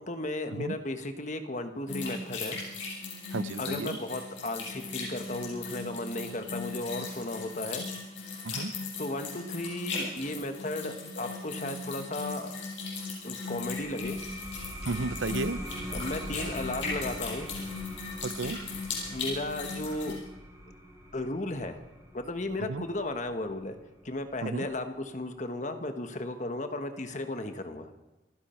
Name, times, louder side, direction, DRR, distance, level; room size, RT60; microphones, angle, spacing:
voice 1, 0.0-2.6 3.6-7.9 9.0-12.6 13.2-14.2 15.9-17.5 19.1-20.2 21.1-21.8 22.1-23.8 24.0-27.9, left 2 dB, 40° left, 7 dB, 1.3 m, -35 dB
sound 1, 1.9-20.1, left 4 dB, 70° left, 7.2 m, -38 dB
voice 2, 3.3-4.0 8.4-8.7 14.9-15.6 18.2-18.6 22.7-22.8 24.4-24.7, right 3 dB, 90° right, 14 dB, 0.7 m, -33 dB
sound 2, 13.5-24.7, equal, 20° right, 5.0 m, -43 dB
28.5 x 10.5 x 4.4 m, 1.0 s
head